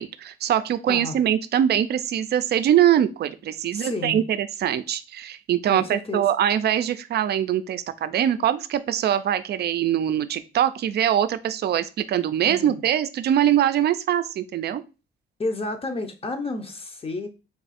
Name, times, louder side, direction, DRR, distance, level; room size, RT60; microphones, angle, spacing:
voice 1, 0.0-14.8, right 10 dB, 55° right, 12 dB, 0.4 m, -23 dB
voice 2, 3.7-4.2 5.7-6.2 12.4-12.8 15.4-17.3, left 2 dB, 30° left, 7 dB, 0.8 m, -31 dB
3.6 x 2.4 x 4.1 m, 0.30 s
cardioid pair, 90°, 20 cm